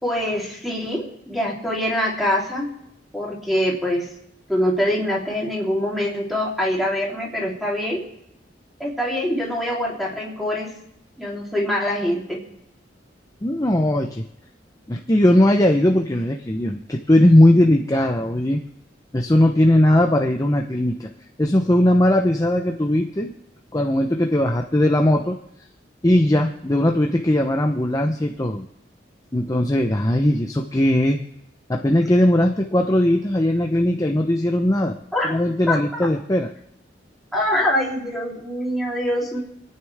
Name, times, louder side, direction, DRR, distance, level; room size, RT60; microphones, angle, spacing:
voice 1, 0.0-2.7 3.1-4.1 4.5-8.0 8.8-10.7 11.2-12.4 35.1-35.4 35.7-36.1 37.3-39.4, left 1 dB, ahead, -4 dB, 3.6 m, -24 dB
voice 2, 13.4-14.2 14.9-18.6 19.1-21.1 21.4-23.3 23.7-25.4 26.0-28.6 29.3-31.2 31.7-35.0 35.3-36.5, left 1 dB, 20° left, 3 dB, 0.8 m, -19 dB
28.5 x 9.6 x 3.5 m, 0.79 s
head